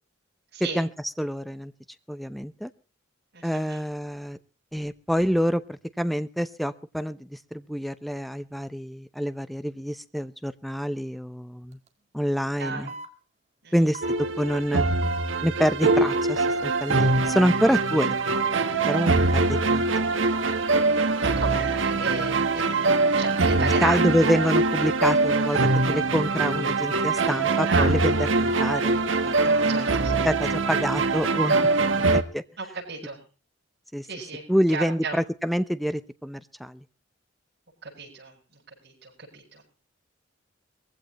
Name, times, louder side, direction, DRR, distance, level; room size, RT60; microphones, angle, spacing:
voice 1, 1.2-1.7 2.1-2.7 3.4-4.4 4.7-11.8 12.1-12.9 13.7-14.9 15.4-18.4 18.9-19.8 23.6-29.9 30.2-31.6 32.3-32.4 33.9-34.1 34.5-36.8, equal, ahead, 13 dB, 0.7 m, -27 dB
voice 2, 3.3-3.8 12.6-13.0 13.6-13.8 21.2-24.1 27.6-27.9 29.4-30.2 32.6-33.2 34.1-34.4 34.7-35.2 37.8-39.6, right 4 dB, 55° right, -5 dB, 7.4 m, -34 dB
sound 1, 11.7-11.9 12.9-13.1 13.9-14.2 15.0-15.3 16.1-16.3 17.1-17.4 18.2-18.5 19.3-19.5 20.4-20.6 21.4-21.7 22.5-22.8 23.6-23.8 24.7-24.9 25.7-26.0 26.8-27.1 28.3-28.7 29.2-29.3, right 2 dB, 35° right, 2.0 m, -38 dB
sound 2, 14.0-32.2, right 3 dB, 75° right, 1.3 m, -23 dB
21.5 x 15.5 x 3.1 m, 0.35 s
head